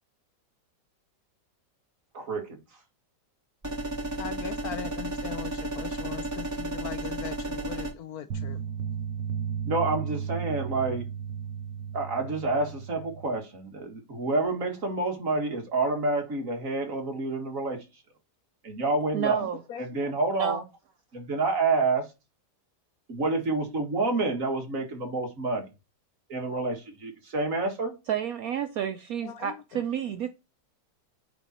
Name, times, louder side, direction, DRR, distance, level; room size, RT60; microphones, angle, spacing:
voice 1, 2.1-2.6 9.6-11.0 11.9-17.8 18.6-19.4 19.8-20.6 21.1-22.0 23.1-25.7 26.3-27.9, right 3 dB, 50° right, 2.1 m, -28 dB
sound 1, 3.6-7.9, right 1 dB, 10° right, 2.4 m, -33 dB
voice 2, 4.2-8.6 19.4-20.1 29.2-29.8, left 9 dB, 65° left, 1.1 m, -40 dB
sound 2, 8.3-13.3, right 7 dB, 90° right, 1.4 m, -34 dB
voice 3, 19.1-19.6 20.4-20.6 28.1-30.3, right 9 dB, 65° right, 1.0 m, -30 dB
9.0 x 3.9 x 4.2 m
omnidirectional pair, 1.9 m